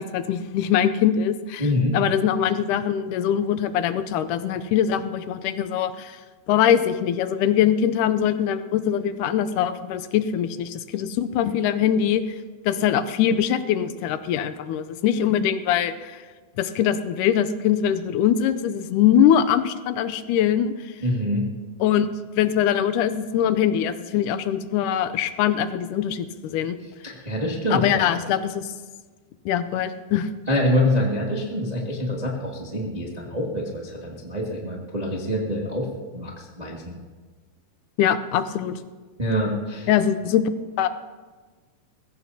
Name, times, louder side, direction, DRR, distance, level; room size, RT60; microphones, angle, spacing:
voice 1, 0.0-6.2 6.5-12.2 12.7-16.2 16.6-20.9 21.8-22.1 22.4-26.8 27.7-28.7 29.5-30.3 38.0-38.8 39.9-40.4 40.8-40.9, left 9 dB, 80° left, 11 dB, 1.9 m, -22 dB
voice 2, 1.6-2.0 21.0-21.4 27.0-28.0 30.5-35.9 36.1-37.0 39.2-39.9, left 1 dB, 30° right, -3 dB, 0.7 m, -25 dB
21.0 x 16.0 x 2.8 m, 1.4 s
omnidirectional pair, 4.2 m